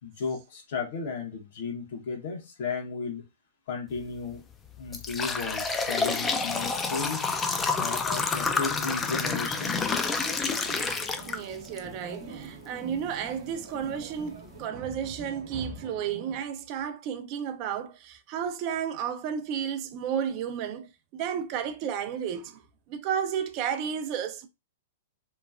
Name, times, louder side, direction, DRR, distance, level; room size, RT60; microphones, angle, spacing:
voice 1, 0.0-3.2 3.7-4.4 4.8-7.2 7.8-10.1, left 5 dB, 60° left, 1.0 m, -34 dB
sound 1, 4.0-4.2 4.7-11.8 12.2-12.3 13.2-13.3 13.8-13.9 14.3-14.6, left 4 dB, 15° left, 0.4 m, -29 dB
sound 2, 10.6-16.4, right 2 dB, 70° right, 0.9 m, -46 dB
voice 2, 11.3-22.6 22.9-24.5, right 8 dB, 40° right, 0.5 m, -32 dB
2.9 x 2.2 x 2.4 m
hypercardioid pair, 120°, 0 cm